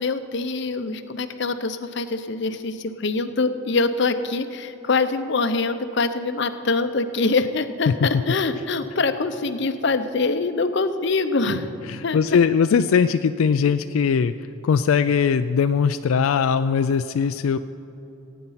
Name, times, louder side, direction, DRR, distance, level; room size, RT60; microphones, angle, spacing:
voice 1, 0.0-11.7 12.0-12.2, left 3 dB, 55° left, 10 dB, 0.7 m, -24 dB
voice 2, 11.9-14.3 14.6-17.6, left 6 dB, 85° left, 10 dB, 0.3 m, -20 dB
16.5 x 9.3 x 5.7 m, 2.9 s
head